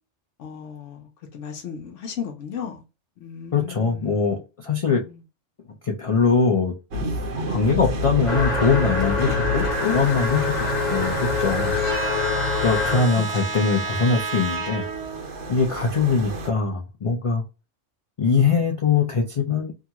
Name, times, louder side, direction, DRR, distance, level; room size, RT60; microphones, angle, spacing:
voice 1, 0.4-2.8 3.2-4.3 4.9-5.2 13.1-13.6, left 7 dB, 80° left, 1.0 m, -36 dB
voice 2, 3.5-5.0 5.8-6.7 7.5-11.7 12.6-14.8 15.5-17.4 18.2-19.7, left 5 dB, 55° left, 0.3 m, -22 dB
sound 1, 6.9-16.5, right 2 dB, 75° right, 1.2 m, -29 dB
sound 2, 8.3-13.2, left 4 dB, 40° left, 1.1 m, -25 dB
2.9 x 2.3 x 2.8 m
omnidirectional pair, 1.2 m